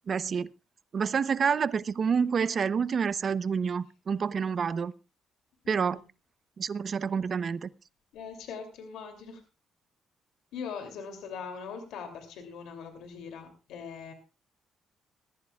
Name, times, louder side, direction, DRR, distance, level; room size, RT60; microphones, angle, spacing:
voice 1, 0.1-0.5 0.9-4.9 5.7-6.0 6.6-7.7, right 6 dB, 50° right, 0.7 m, -28 dB
voice 2, 5.6-6.0 8.1-9.4 10.5-14.1, left 6 dB, 85° left, 2.7 m, -41 dB
20.5 x 14.5 x 2.4 m
cardioid pair, 90°, 0 cm